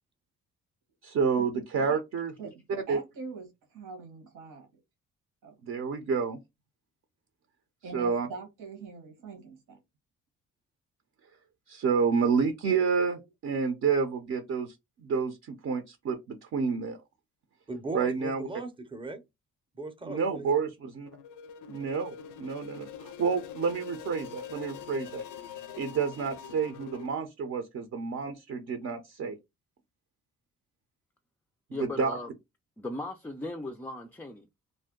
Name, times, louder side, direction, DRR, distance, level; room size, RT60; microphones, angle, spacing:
voice 1, 1.0-2.3 2.9-3.0 5.6-6.4 7.9-8.3 11.7-17.0 17.9-18.5 20.0-21.1 21.7-25.2 25.8-29.4 31.8-32.1, right 5 dB, 55° right, 0.6 m, -29 dB
voice 2, 2.4-4.7 5.4-5.6 7.8-9.8, right 4 dB, 90° right, 1.2 m, -43 dB
voice 3, 17.7-19.2 19.7-20.5, right 2 dB, 15° right, 0.6 m, -38 dB
sound 1, 21.1-27.1, left 8 dB, 85° left, 0.5 m, -44 dB
voice 4, 31.7-32.3 32.8-34.5, left 2 dB, 5° left, 0.3 m, -37 dB
2.6 x 2.1 x 3.6 m
cardioid pair, 90°, 30 cm